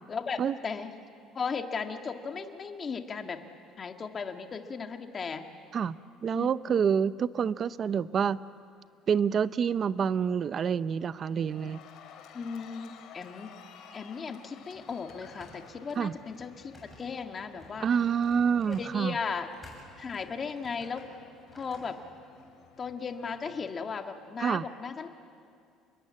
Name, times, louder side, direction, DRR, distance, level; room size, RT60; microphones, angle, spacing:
voice 1, 0.1-0.9 1.3-3.4 3.8-5.4 6.3-6.5 12.3-13.5 13.9-17.9 18.7-19.5 20.0-21.1 21.5-22.0 22.8-25.1, left 5 dB, 25° left, 5 dB, 1.7 m, -36 dB
voice 2, 5.7-8.4 9.1-11.8 16.0-16.2 17.8-19.1 24.4-24.7, right 7 dB, 35° right, 16 dB, 0.6 m, -27 dB
Cheering, 8.9-9.3 9.6-23.7, left 7 dB, 60° left, 2.8 m, -55 dB
sound 1, 14.6-21.9, left 1 dB, 10° left, 7.3 m, -54 dB
29.0 x 21.5 x 8.7 m, 2.3 s
cardioid pair, 145°, 0 cm